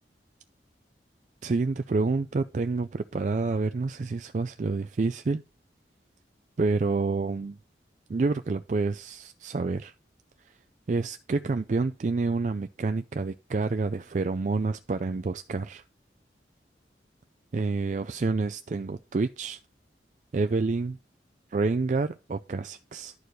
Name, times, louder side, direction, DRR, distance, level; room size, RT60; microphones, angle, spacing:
voice 1, 1.4-5.4 6.6-7.6 8.1-9.9 10.9-15.8 17.5-19.6 20.3-21.0 21.5-23.1, right 3 dB, 45° right, 0.4 m, -28 dB
11.0 x 4.5 x 4.6 m
head